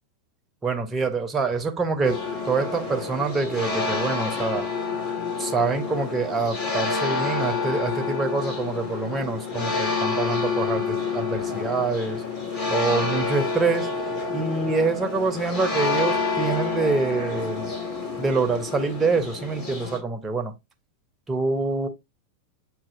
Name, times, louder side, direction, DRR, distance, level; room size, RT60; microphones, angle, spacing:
voice 1, 0.6-2.2 2.5-4.6 5.4-12.2 12.7-13.9 14.3-17.7 18.2-20.5 21.3-21.9, right 4 dB, 20° right, 0.9 m, -26 dB
sound 1, 2.0-20.0, left 4 dB, 40° left, 2.4 m, -28 dB
7.4 x 2.8 x 2.5 m
figure-of-eight pair, 90°, 0 cm